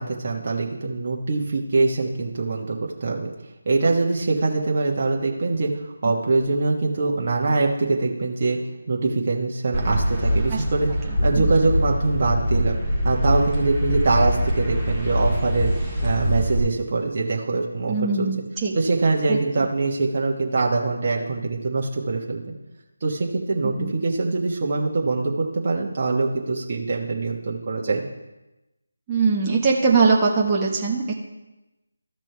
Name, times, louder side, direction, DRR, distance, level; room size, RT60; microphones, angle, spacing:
voice 1, 0.0-3.3 3.6-5.7 6.0-8.6 8.9-12.8 13.0-15.7 16.0-18.3 18.7-22.5 23.0-28.0, right 3 dB, 40° right, -1 dB, 1.3 m, -23 dB
sound 1, 9.7-16.6, equal, 10° left, 2.0 m, -23 dB
voice 2, 17.9-18.7 19.3-19.4 23.8-23.9 29.1-31.2, right 4 dB, 20° right, -3 dB, 1.1 m, -21 dB
14.0 x 6.0 x 3.4 m, 1.0 s
figure-of-eight pair, 160°, 0 cm